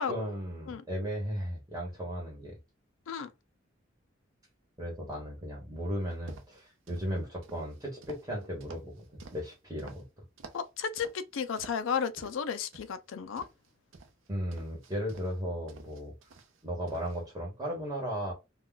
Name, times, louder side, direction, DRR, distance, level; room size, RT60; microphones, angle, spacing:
voice 1, 0.0-2.6 4.8-9.0 9.3-10.0 14.3-16.1 16.6-18.3, equal, 15° right, 1.1 m, -36 dB
sound 1, 6.1-7.1 7.4-10.0 10.4-10.7 11.0-11.9 12.2-12.9 13.4-15.3 15.7-16.6 16.9-17.2, right 3 dB, 80° right, 0.6 m, -51 dB
voice 2, 10.5-13.5, left 6 dB, 85° left, 0.4 m, -33 dB
2.3 x 2.3 x 3.8 m
head